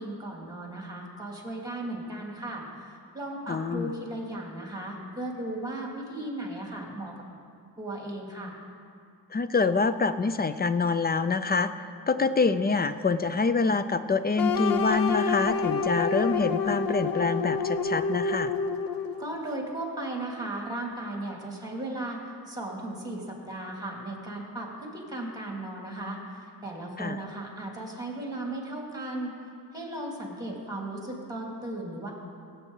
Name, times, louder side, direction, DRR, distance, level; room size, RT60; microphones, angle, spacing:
voice 1, 0.0-7.1 7.8-8.5 19.2-22.2 22.5-29.3 29.7-32.1, right 1 dB, 10° right, -1 dB, 2.5 m, -36 dB
voice 2, 3.5-3.9 9.3-18.5 27.0-27.2, left 4 dB, 25° left, 12 dB, 0.4 m, -26 dB
sound 1, 14.4-19.3, left 5 dB, 55° left, 0.8 m, -28 dB
17.0 x 8.0 x 3.9 m, 2.3 s
cardioid pair, 75°, 41 cm